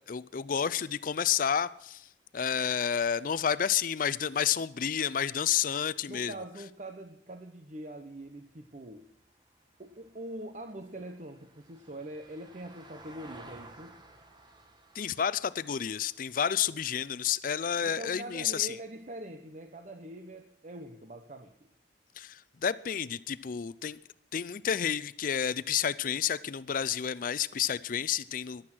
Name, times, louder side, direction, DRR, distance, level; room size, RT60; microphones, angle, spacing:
voice 1, 0.1-2.1 2.3-6.3 14.9-18.7 22.2-24.0 24.3-28.6, left 8 dB, 50° left, 17 dB, 0.4 m, -30 dB
voice 2, 6.1-9.1 9.8-14.0 17.8-21.5, right 1 dB, 40° right, 7 dB, 1.0 m, -43 dB
Vehicle, 8.0-18.4 20.7-20.8, right 2 dB, 25° right, 1.7 m, -56 dB
15.0 x 11.5 x 6.1 m, 0.77 s
head